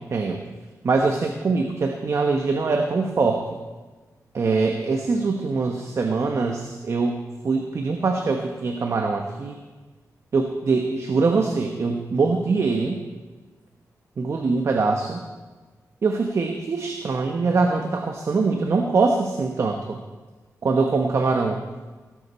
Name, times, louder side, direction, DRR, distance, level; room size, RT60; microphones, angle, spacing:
voice 1, 0.1-0.4 0.8-3.5 4.3-9.6 10.3-13.0 14.2-15.2 16.0-20.0 20.6-21.6, right 4 dB, 50° right, 3 dB, 1.1 m, -23 dB
17.5 x 12.0 x 4.3 m, 1.3 s
wide cardioid pair, 125°, 6 cm